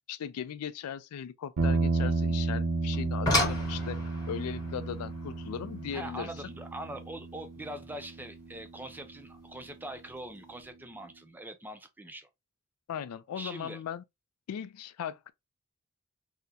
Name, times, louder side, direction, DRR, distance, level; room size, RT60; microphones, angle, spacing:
voice 1, 0.1-4.0 4.3-6.3 12.9-14.0 14.5-15.3, left 8 dB, 90° left, 0.3 m, -38 dB
sound 1, 1.6-9.9, right 3 dB, 80° right, 0.6 m, -33 dB
sound 2, 2.9-8.0 9.4-9.5 10.1-10.3 10.6-10.7, left 1 dB, 15° left, 1.1 m, -34 dB
voice 2, 5.9-12.3 13.4-13.8, right 1 dB, 10° right, 0.3 m, -42 dB
3.6 x 2.0 x 2.6 m
head